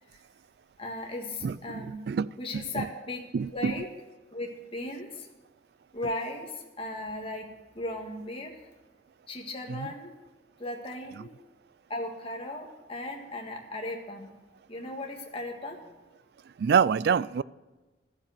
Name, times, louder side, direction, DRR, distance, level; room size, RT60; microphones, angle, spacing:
voice 1, 0.8-2.0 2.4-3.2 3.5-3.9 4.3-5.3 5.9-8.6 9.3-10.1 10.6-11.3 11.9-14.3 14.7-15.9, left 1 dB, 30° left, 1.7 m, -37 dB
voice 2, 1.4-2.3 2.8-2.9 3.3-3.7 9.8-9.9 16.6-17.4, right 6 dB, 60° right, 0.3 m, -26 dB
14.0 x 7.3 x 7.8 m
head